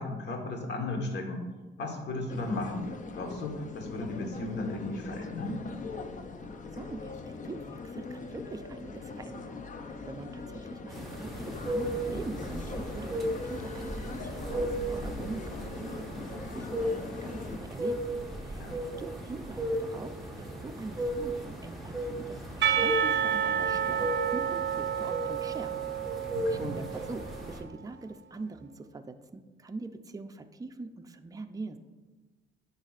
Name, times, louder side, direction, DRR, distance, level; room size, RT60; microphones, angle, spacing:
voice 1, 0.0-1.4 1.8-2.8 3.1-5.6 18.6-18.8 26.3-26.7, left 2 dB, 60° left, 2 dB, 1.4 m, -35 dB
sound 1, 2.3-17.6, left 4 dB, 40° left, 0.6 m, -41 dB
voice 2, 6.7-7.2 7.4-9.6 10.1-18.1 18.4-20.1 20.4-25.7 26.5-31.8, right 3 dB, 20° right, 7 dB, 0.5 m, -43 dB
sound 2, 10.9-27.6, right 1 dB, ahead, 1.3 m, -35 dB
Percussion, 22.6-27.5, right 8 dB, 65° right, 0.6 m, -30 dB
8.7 x 5.5 x 2.5 m, 1.2 s
cardioid pair, 90°, 20 cm